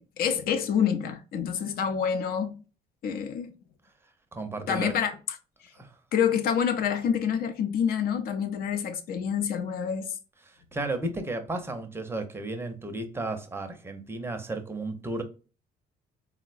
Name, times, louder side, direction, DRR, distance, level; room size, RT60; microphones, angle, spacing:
voice 1, 0.0-2.6 3.0-3.5 4.7-5.4 6.1-10.1, left 7 dB, 60° left, 0.5 m, -27 dB
voice 2, 4.3-4.9 5.8-5.9 10.7-15.2, right 2 dB, 15° right, 0.5 m, -33 dB
3.7 x 2.1 x 2.4 m
cardioid pair, 110°, 17 cm